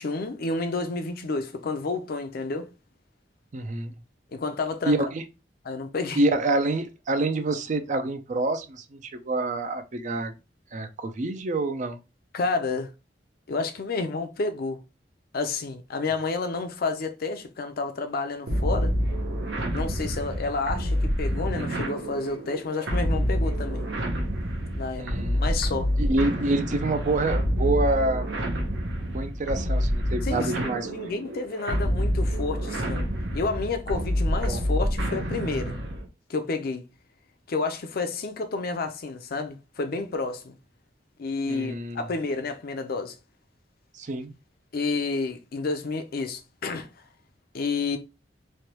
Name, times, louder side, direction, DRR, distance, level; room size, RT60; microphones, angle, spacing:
voice 1, 0.0-2.7 4.3-5.0 5.6-6.3 12.3-12.9 13.5-14.8 15.3-18.9 19.7-23.9 24.7-25.1 25.4-25.9 30.2-33.0 33.3-35.8 36.3-36.8 37.5-40.6 41.2-43.2 44.7-46.9 47.5-48.0, left 3 dB, 60° left, 0.5 m, -30 dB
voice 2, 3.5-3.9 4.9-5.2 6.2-10.3 10.7-12.0 25.0-25.4 26.0-28.3 29.0-30.9 34.5-34.6 41.5-42.0 44.0-44.3, right 2 dB, 45° right, 0.4 m, -27 dB
Slow Beast (Mixdown), 18.5-36.1, equal, 75° right, 0.7 m, -27 dB
3.2 x 2.2 x 2.8 m
head